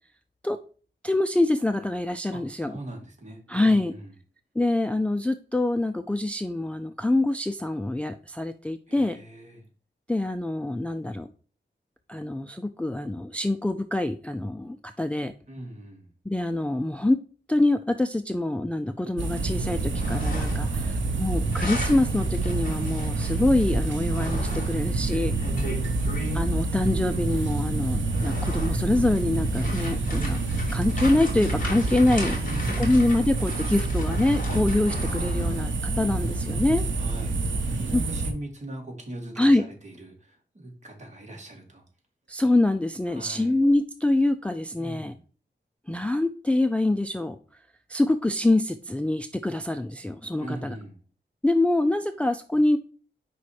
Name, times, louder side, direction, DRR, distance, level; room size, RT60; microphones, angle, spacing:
voice 1, 1.0-2.8 3.5-3.9 4.6-9.2 10.1-11.3 12.1-15.3 16.3-17.2 17.5-25.4 26.3-32.4 32.8-36.8 37.9-38.0 39.4-39.6 42.3-45.1 45.9-47.4 47.9-50.8 51.4-52.8, left 2 dB, 5° left, 8 dB, 0.4 m, -25 dB
voice 2, 2.3-4.1 8.9-9.7 15.5-16.1 20.6-21.2 25.4-26.0 32.4-33.0 36.9-37.4 37.6-41.8 43.1-43.5 44.8-45.2 50.4-51.0, right 1 dB, 40° right, 1 dB, 2.1 m, -40 dB
sound 1, 19.2-38.3, right 3 dB, 80° right, 0.9 m, -27 dB
sound 2, 19.8-20.8 21.1-26.4 27.3-27.4 27.9-35.7, left 1 dB, 45° left, 2.5 m, -37 dB
5.1 x 4.2 x 4.7 m, 0.39 s
wide cardioid pair, 100°, 19 cm